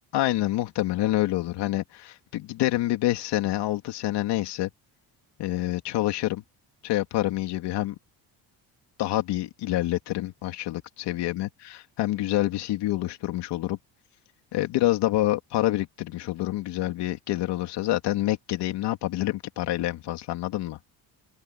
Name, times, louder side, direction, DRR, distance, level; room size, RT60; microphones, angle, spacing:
voice 1, 0.1-4.7 5.4-6.4 6.8-7.9 9.0-13.8 14.5-20.8, left 15 dB, 85° left, 2.8 m, -27 dB
cardioid pair, 170°, 40 cm